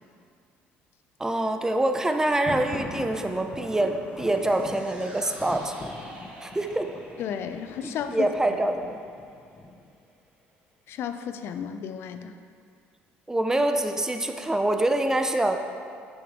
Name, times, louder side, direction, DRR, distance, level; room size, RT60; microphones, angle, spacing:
voice 1, 1.2-5.7 6.4-6.9 7.8-9.0 13.3-15.6, right 1 dB, 10° right, 5 dB, 0.7 m, -25 dB
Thunder, 2.2-10.0, left 2 dB, 30° left, 0.8 m, -42 dB
sound 1, 4.0-10.5 10.8-10.9, right 1 dB, 30° right, 2.1 m, -49 dB
voice 2, 7.2-8.3 10.9-12.4, left 8 dB, 60° left, 8 dB, 0.5 m, -33 dB
9.1 x 6.0 x 3.7 m, 2.3 s
supercardioid pair, 75°, 5 cm